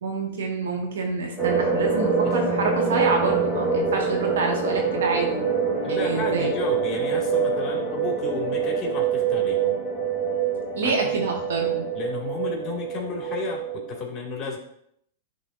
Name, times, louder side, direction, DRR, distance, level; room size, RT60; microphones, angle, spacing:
voice 1, 0.0-5.4 5.9-6.5 10.7-11.9, right 4 dB, 80° right, 0 dB, 1.7 m, -27 dB
sound 1, 1.4-14.0, right 5 dB, ahead, 2.1 m, -25 dB
voice 2, 5.8-9.8 10.8-11.3 11.9-14.6, left 4 dB, 25° left, 0 dB, 2.1 m, -33 dB
10.5 x 4.0 x 2.6 m, 0.71 s
hypercardioid pair, 130°, 0 cm